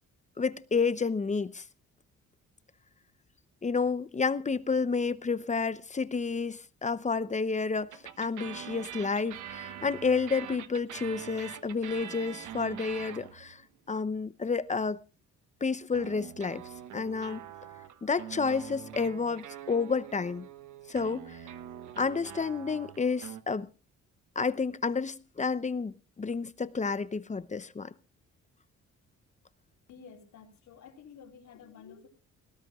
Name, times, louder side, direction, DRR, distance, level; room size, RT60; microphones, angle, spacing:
voice 1, 0.4-1.6 3.6-13.6 13.9-15.0 15.6-16.6 16.9-17.4 18.0-20.4 20.9-21.4 22.0-23.7 24.4-27.9, left 4 dB, 25° left, 0.8 m, -30 dB
sound 1, 7.9-13.7 15.9-23.4, right 10 dB, 75° right, 1.2 m, -44 dB
voice 2, 29.9-32.1, left 6 dB, 70° left, 3.6 m, -51 dB
20.0 x 18.0 x 2.4 m
cardioid pair, 90°, 30 cm